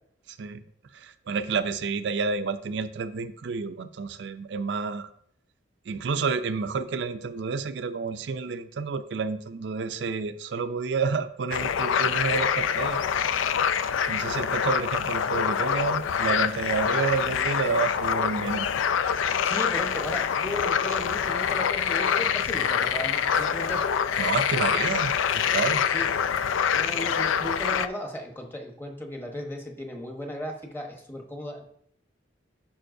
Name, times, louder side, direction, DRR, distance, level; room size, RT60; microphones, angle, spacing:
voice 1, 0.3-0.6 0.9-5.1 5.9-13.0 14.1-18.7 24.2-25.8, right 5 dB, 65° right, 11 dB, 0.4 m, -30 dB
sound 1, 11.5-27.9, left 7 dB, 90° left, 0.4 m, -25 dB
voice 2, 19.4-23.9 25.9-26.1 26.7-31.6, equal, 10° left, 2 dB, 1.0 m, -36 dB
11.0 x 5.5 x 2.6 m, 0.68 s
head